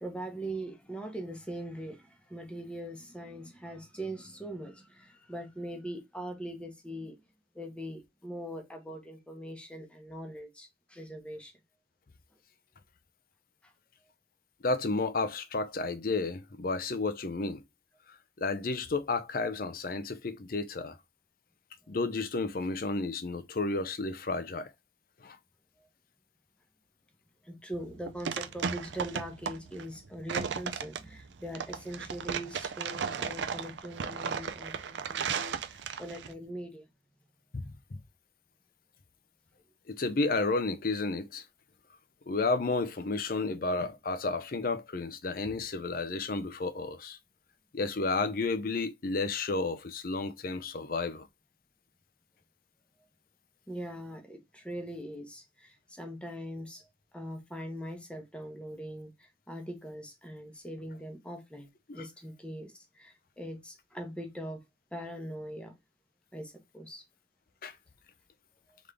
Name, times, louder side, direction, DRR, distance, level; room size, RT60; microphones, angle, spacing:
voice 1, 0.0-7.2 7.5-11.5 13.6-13.7 25.8-25.9 27.4-36.9 53.7-61.7 61.9-64.6 64.9-65.8 66.3-67.0 68.7-68.8, right 1 dB, 5° left, 0.9 m, -41 dB
voice 2, 14.6-17.6 18.4-21.0 21.9-24.7 25.2-25.4 37.5-37.7 39.9-41.4 42.3-47.2 47.7-51.3 67.6-67.8, left 3 dB, 50° left, 0.5 m, -32 dB
sound 1, 27.7-36.3, right 6 dB, 70° right, 0.5 m, -35 dB
3.7 x 3.6 x 3.3 m
head